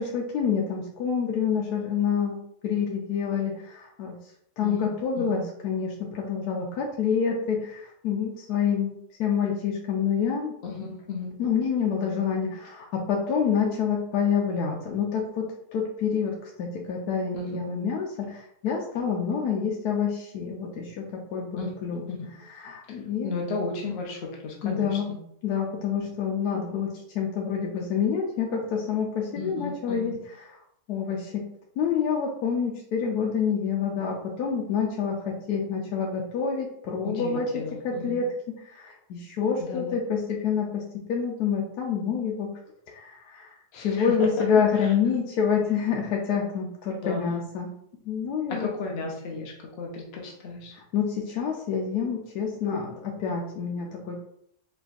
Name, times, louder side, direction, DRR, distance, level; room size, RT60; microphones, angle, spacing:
voice 1, 0.0-2.4 2.6-4.2 4.6-8.9 9.2-10.5 11.4-15.5 15.7-22.0 22.6-23.3 24.6-25.1 25.4-30.2 30.9-31.4 31.8-40.8 41.1-42.5 42.9-47.7 48.1-48.7 50.9-54.2, left 6 dB, 80° left, -1 dB, 1.1 m, -27 dB
voice 2, 10.6-11.4 17.3-17.6 21.6-21.7 22.1-22.2 22.9-23.0 23.2-25.2 29.4-30.1 37.0-38.2 39.6-40.0 43.7-44.5 44.7-44.9 47.0-47.4 48.5-50.7, left 4 dB, 60° left, 0 dB, 0.7 m, -34 dB
4.0 x 3.3 x 2.4 m, 0.71 s
omnidirectional pair, 1.7 m